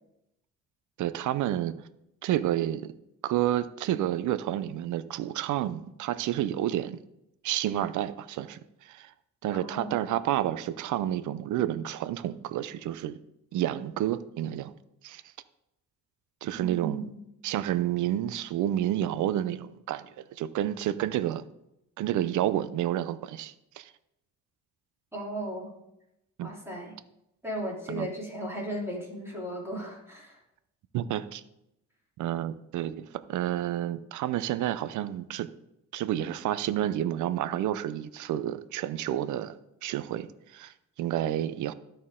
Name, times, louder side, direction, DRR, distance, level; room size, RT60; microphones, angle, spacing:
voice 1, 1.0-1.8 2.2-2.9 3.2-7.0 7.4-9.1 9.4-13.2 13.5-14.7 15.0-15.2 16.4-17.1 17.4-21.4 22.0-23.9 26.4-26.5 27.9-28.1 30.9-31.4 32.2-35.5 35.9-39.5 39.8-41.7, right 12 dB, 75° right, 14 dB, 0.6 m, -30 dB
voice 2, 9.5-10.0 16.5-17.3 25.1-25.7 26.4-26.9 27.4-30.4, right 1 dB, 10° right, -4 dB, 3.1 m, -36 dB
12.5 x 4.4 x 3.6 m, 0.84 s
cardioid pair, 90°, 30 cm